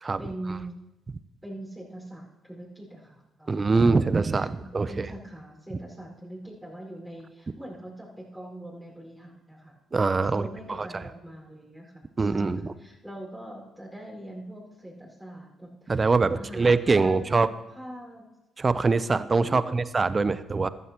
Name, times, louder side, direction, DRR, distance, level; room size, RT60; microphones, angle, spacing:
voice 1, 0.2-0.7 1.4-3.6 4.3-9.8 10.2-16.1 16.3-18.3 19.4-19.8, right 1 dB, ahead, -5 dB, 5.2 m, -42 dB
voice 2, 3.5-5.1 9.9-11.0 12.2-12.7 15.9-17.5 18.6-20.7, right 4 dB, 35° right, 15 dB, 0.7 m, -24 dB
15.5 x 12.5 x 3.0 m, 0.99 s
hypercardioid pair, 45°, 0 cm